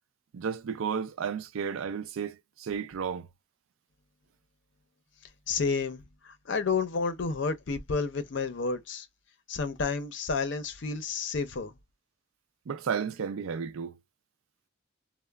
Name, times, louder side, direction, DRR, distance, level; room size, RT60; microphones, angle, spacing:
voice 1, 0.3-3.3 12.7-13.9, right 6 dB, 80° right, 0.4 m, -33 dB
voice 2, 5.5-9.1 9.5-11.7, left 4 dB, 60° left, 0.5 m, -30 dB
2.9 x 2.0 x 2.2 m
head